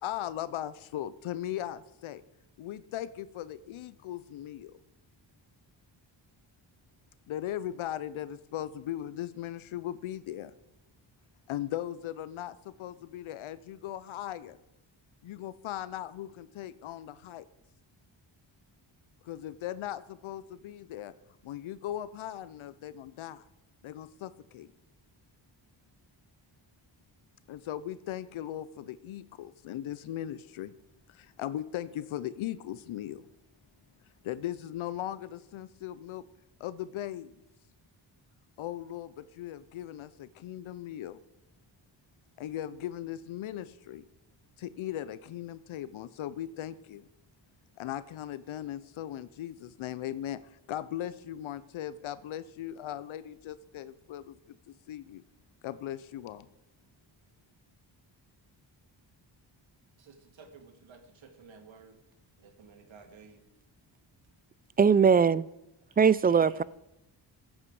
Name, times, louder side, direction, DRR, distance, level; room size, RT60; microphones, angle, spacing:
voice 1, 0.0-2.2 2.6-4.8 7.3-10.5 11.5-14.6 15.2-17.4 19.2-21.1 21.4-23.4 23.8-24.7 27.5-30.7 31.1-33.2 34.2-36.2 36.6-37.3 38.6-41.2 42.4-44.0 44.6-47.0 47.8-55.2 55.6-56.5, left 12 dB, 85° left, 0.7 m, -38 dB
voice 2, 60.0-62.0 62.4-63.4 66.2-66.6, right 5 dB, 75° right, 2.1 m, -53 dB
voice 3, 64.8-65.5 66.0-66.6, right 6 dB, 20° right, 0.3 m, -21 dB
15.0 x 8.7 x 4.8 m
cardioid pair, 65°, 47 cm